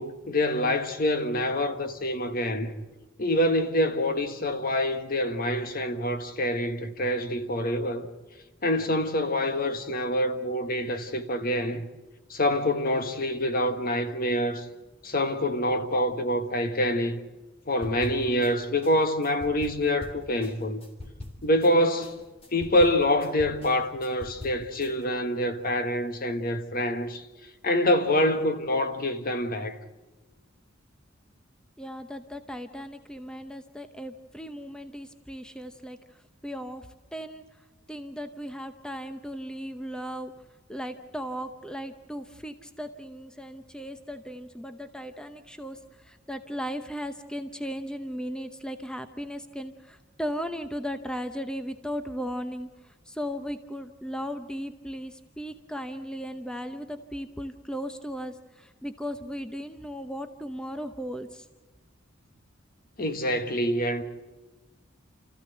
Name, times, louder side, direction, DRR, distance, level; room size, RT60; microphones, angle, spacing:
voice 1, 0.0-2.8 3.2-8.1 8.6-11.9 12.3-14.7 15.0-17.2 17.7-20.8 21.4-22.2 22.5-27.2 27.6-29.8 63.0-64.0, left 1 dB, 45° left, 1.5 m, -26 dB
sound 1, 17.8-18.5 18.8-21.7 22.0-24.9, left 1 dB, 30° left, 2.9 m, -43 dB
voice 2, 31.8-36.9 37.1-37.4 37.9-40.3 40.7-61.5, equal, 5° left, 0.8 m, -36 dB
29.0 x 14.5 x 7.9 m
head